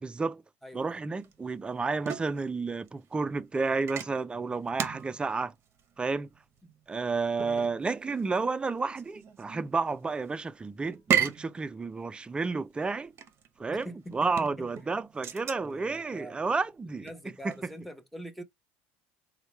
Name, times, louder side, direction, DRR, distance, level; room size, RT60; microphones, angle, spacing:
voice 1, 0.0-0.4 0.7-5.5 6.0-6.3 6.9-13.1 13.6-17.1 17.4-17.7, right 4 dB, 15° right, 0.3 m, -31 dB
voice 2, 0.6-1.0 6.6-6.7 7.4-7.7 13.7-14.5 14.8-14.9 15.6-16.4 17.0-18.4, right 1 dB, ahead, 0.8 m, -44 dB
sound 1, 1.2-17.8, right 8 dB, 45° right, 0.7 m, -37 dB
4.2 x 2.2 x 3.0 m
supercardioid pair, 90°, 6 cm